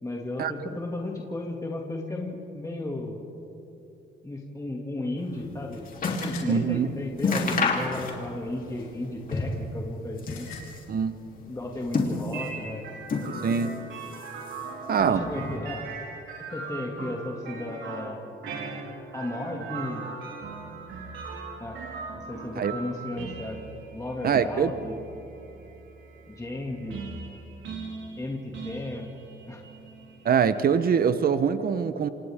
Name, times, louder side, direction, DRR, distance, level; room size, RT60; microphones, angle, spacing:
voice 1, 0.0-3.2 4.2-5.8 6.1-10.5 11.5-12.9 13.2-13.3 15.0-15.8 16.4-18.4 19.1-20.1 21.6-21.8 22.1-23.6 23.9-25.0 26.3-27.0 28.2-29.1 29.5-29.6, left 2 dB, 15° left, -1 dB, 2.4 m, -34 dB
sound 1, 5.3-12.1, left 5 dB, 90° left, 4.6 m, -49 dB
sound 2, 5.3-6.4 6.8-6.9 7.2-8.5 8.8-9.7 10.1-10.9 11.6-12.6 13.0-13.8 14.0-14.8 15.5-15.6, left 4 dB, 45° left, 3.3 m, -29 dB
voice 2, 6.5-6.9 10.9-11.2 13.4-13.7 14.9-15.2 22.6-22.7 24.2-24.7 30.2-32.1, right 7 dB, 50° right, 11 dB, 1.0 m, -23 dB
sound 3, 12.3-31.0, right 4 dB, 80° right, 3.9 m, -39 dB
28.0 x 26.0 x 3.7 m, 2.9 s
cardioid pair, 90°, 20 cm